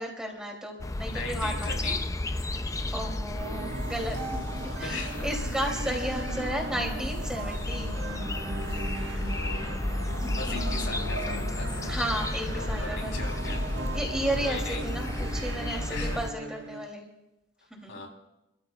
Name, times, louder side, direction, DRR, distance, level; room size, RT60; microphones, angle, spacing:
voice 1, 0.0-2.0 2.9-5.0 5.2-8.1 10.2-10.9 11.9-13.2 13.9-17.0 17.7-18.1, right 1 dB, 5° right, 0 dB, 2.9 m, -34 dB
sound 1, 0.8-16.3, left 1 dB, 15° left, 0.5 m, -32 dB
voice 2, 1.1-2.1 4.7-5.3 5.9-6.1 8.6-8.8 9.1-9.9 10.3-12.0 12.5-13.7 14.4-14.9 15.9-16.2 17.9-18.1, left 3 dB, 90° left, 1 dB, 3.6 m, -39 dB
sound 2, 3.4-16.9, right 2 dB, 75° right, 1.5 m, -38 dB
28.5 x 13.5 x 2.4 m, 0.94 s
head